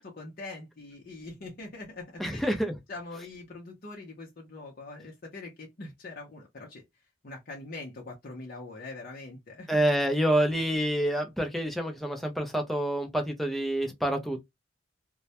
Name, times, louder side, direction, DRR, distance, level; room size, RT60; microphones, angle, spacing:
voice 1, 0.0-2.4 2.9-6.8 7.2-9.8, left 2 dB, 45° left, 0.6 m, -43 dB
voice 2, 2.2-2.8 9.7-14.4, right 1 dB, ahead, 0.4 m, -27 dB
2.1 x 2.1 x 2.7 m
head